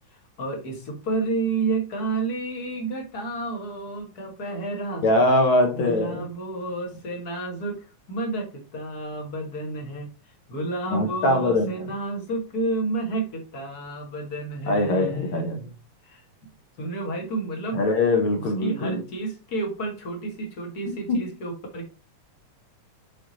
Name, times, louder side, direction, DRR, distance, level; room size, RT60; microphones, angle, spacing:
voice 1, 0.4-5.0 5.8-10.1 10.5-15.6 16.0-16.2 16.8-17.8 18.6-21.9, right 3 dB, 45° left, 1 dB, 1.4 m, -30 dB
voice 2, 5.0-6.2 10.9-11.7 14.7-15.7 17.7-19.0 21.1-21.2, left 1 dB, 60° left, 3 dB, 1.4 m, -22 dB
6.4 x 4.2 x 3.9 m, 0.31 s
omnidirectional pair, 3.5 m